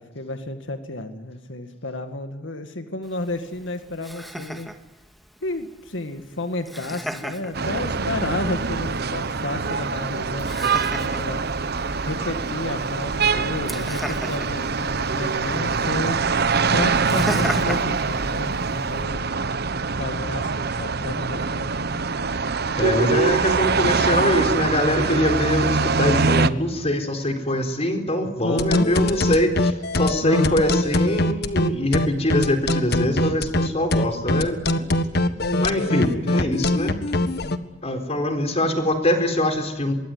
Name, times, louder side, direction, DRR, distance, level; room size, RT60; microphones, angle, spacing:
voice 1, 0.0-4.7 5.4-11.4 12.0-16.2 16.7-19.4 19.9-21.7 28.4-28.9 30.2-30.6 35.4-36.5 37.4-37.6, left 2 dB, 80° left, 7 dB, 2.0 m, -31 dB
Laughter, 3.0-19.0, equal, ahead, 2.0 m, -38 dB
sound 1, 7.5-26.5, right 4 dB, 60° right, 1.1 m, -24 dB
voice 2, 22.8-34.9 35.6-37.0 37.8-39.9, left 1 dB, 35° left, 6 dB, 4.3 m, -23 dB
sound 2, 28.6-37.6, left 1 dB, 60° left, 1.6 m, -22 dB
24.5 x 23.0 x 9.6 m, 0.97 s
head